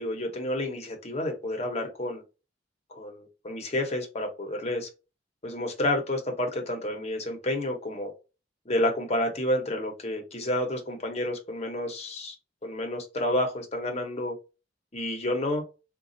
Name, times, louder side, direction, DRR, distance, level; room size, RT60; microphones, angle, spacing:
voice 1, 0.0-2.2 2.9-4.9 5.4-8.1 8.7-12.4 12.6-14.3 14.9-15.6, left 1 dB, 35° left, 0.8 m, -30 dB
4.0 x 2.3 x 2.5 m
head